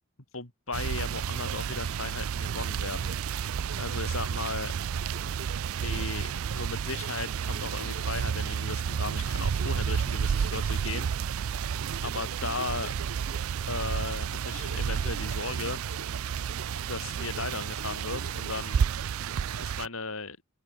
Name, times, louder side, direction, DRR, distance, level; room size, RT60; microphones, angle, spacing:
voice 1, 0.3-3.1 3.8-4.7 5.2-5.4 5.8-11.1 12.0-12.9 13.6-15.8 16.9-18.9 19.6-20.4, left 3 dB, 70° left, 4.1 m, -36 dB
sound 1, 0.7-19.9, right 7 dB, 75° right, 0.4 m, -31 dB
sound 2, 1.4-19.7, right 3 dB, 60° right, 1.9 m, -47 dB
open air
head